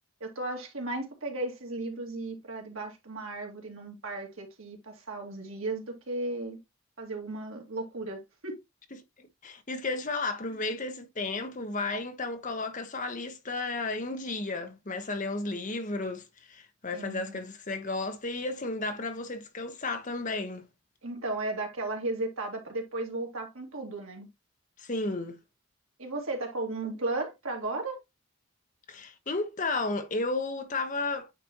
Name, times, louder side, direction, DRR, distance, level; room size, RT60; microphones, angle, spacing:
voice 1, 0.2-6.6 7.0-8.6 16.9-17.4 21.0-24.3 26.0-28.0, right 2 dB, 75° right, 2.3 m, -35 dB
voice 2, 8.9-20.7 24.8-25.4 28.9-31.3, left 3 dB, 35° left, 0.9 m, -33 dB
9.2 x 4.2 x 2.9 m
head